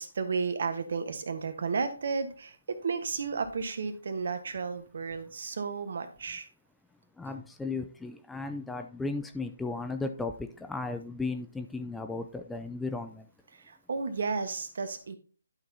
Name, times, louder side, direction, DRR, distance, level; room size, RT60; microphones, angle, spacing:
voice 1, 0.0-6.5 13.5-15.2, right 5 dB, 60° right, 9 dB, 1.3 m, -33 dB
voice 2, 7.2-13.3, left 3 dB, 5° left, 7 dB, 0.5 m, -35 dB
11.5 x 5.9 x 2.8 m, 0.36 s
figure-of-eight pair, 145°, 0 cm